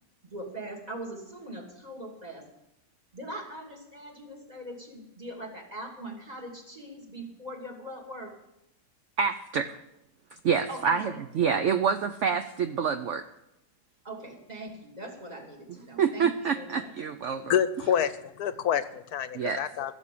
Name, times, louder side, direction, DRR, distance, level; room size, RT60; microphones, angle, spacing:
voice 1, 0.3-2.5 3.1-8.3 10.7-11.1 14.0-16.3 16.6-16.9, right 1 dB, 25° right, 1 dB, 2.7 m, -41 dB
voice 2, 9.2-9.8 10.4-13.2 16.0-17.5 19.3-19.6, right 6 dB, 60° right, 9 dB, 0.8 m, -27 dB
voice 3, 17.5-19.9, left 9 dB, 75° left, 14 dB, 1.2 m, -27 dB
16.5 x 7.4 x 8.4 m, 0.85 s
omnidirectional pair, 1.7 m